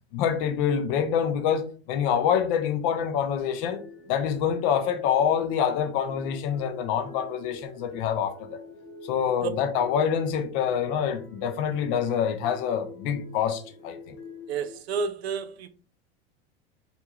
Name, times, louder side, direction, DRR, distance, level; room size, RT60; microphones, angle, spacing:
voice 1, 0.1-3.8 4.1-8.6 9.0-14.1, left 8 dB, 60° left, 0.8 m, -26 dB
sound 1, 3.2-14.8, left 2 dB, 85° left, 1.1 m, -46 dB
voice 2, 14.5-15.7, right 5 dB, 85° right, 0.6 m, -30 dB
4.4 x 2.7 x 2.4 m
hypercardioid pair, 100°, 31 cm